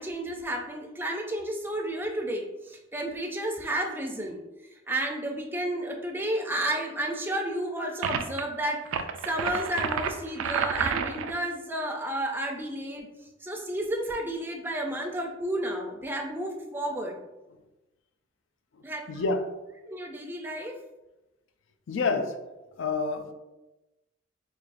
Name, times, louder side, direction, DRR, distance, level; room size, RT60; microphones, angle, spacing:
voice 1, 0.0-4.4 4.9-8.8 9.2-17.2 18.8-19.2 19.9-20.8 23.1-23.3, right 1 dB, 10° right, 1 dB, 0.4 m, -32 dB
sound 1, 8.0-8.4 8.8-11.4, right 6 dB, 85° right, 0.3 m, -30 dB
voice 2, 19.1-19.5 21.9-22.4 22.8-23.3, left 3 dB, 70° left, 6 dB, 0.4 m, -28 dB
4.6 x 2.3 x 2.5 m, 1.0 s
head